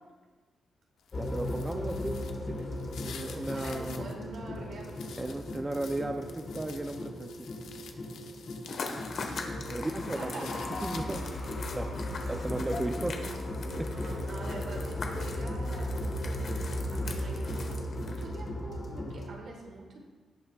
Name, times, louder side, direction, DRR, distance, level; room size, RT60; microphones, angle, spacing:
sound 1, 1.0-4.1 4.5-9.4 9.7-11.5, left 7 dB, 80° left, 0.9 m, -50 dB
sound 2, 1.1-19.3, left 1 dB, 30° left, 1.4 m, -36 dB
voice 1, 1.1-2.7 3.0-4.1 5.2-7.5 9.7-10.3 10.8-11.2 11.7-11.9 12.3-13.9, right 1 dB, 15° right, 5 dB, 0.5 m, -35 dB
voice 2, 3.5-5.1 9.2-9.6 10.1-10.7 11.1-11.3 11.9-12.1 12.4-12.7 13.8-20.0, right 2 dB, 65° right, -1 dB, 2.7 m, -45 dB
sound 3, 8.7-18.4, left 4 dB, 55° left, 1.3 m, -42 dB
17.5 x 7.9 x 2.4 m, 1.3 s
cardioid pair, 120°, 0 cm